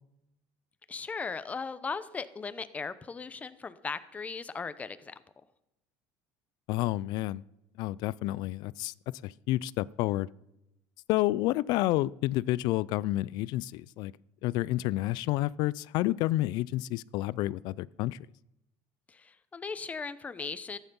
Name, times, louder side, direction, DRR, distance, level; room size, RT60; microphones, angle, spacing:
voice 1, 0.9-5.1 19.1-20.8, left 5 dB, 20° left, 14 dB, 0.7 m, -38 dB
voice 2, 6.7-7.4 7.8-8.9 9.2-10.3 11.1-14.1 14.4-18.2, left 17 dB, 60° left, 22 dB, 0.3 m, -29 dB
14.0 x 9.2 x 5.4 m, 0.87 s
cardioid pair, 140°, 8 cm